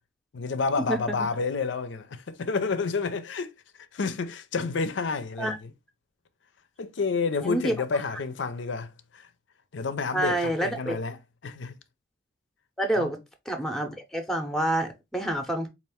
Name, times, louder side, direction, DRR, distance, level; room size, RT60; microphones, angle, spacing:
voice 1, 0.3-3.5 3.9-5.7 6.8-9.3 9.7-11.8 13.0-13.1, left 4 dB, 75° left, 0.5 m, -30 dB
voice 2, 7.4-7.7 10.1-11.0 12.8-13.2 13.5-15.7, right 1 dB, ahead, 0.6 m, -27 dB
4.2 x 2.5 x 3.4 m
head